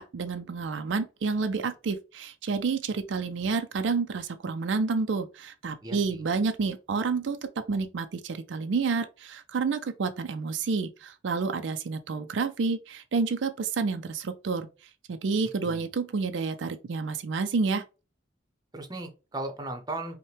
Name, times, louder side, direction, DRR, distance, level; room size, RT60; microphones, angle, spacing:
voice 1, 0.0-7.4 7.7-17.8, right 4 dB, 75° right, 0.4 m, -29 dB
voice 2, 5.8-6.2 15.6-15.9 18.7-20.2, right 2 dB, 20° right, 0.8 m, -37 dB
5.4 x 2.2 x 3.3 m
head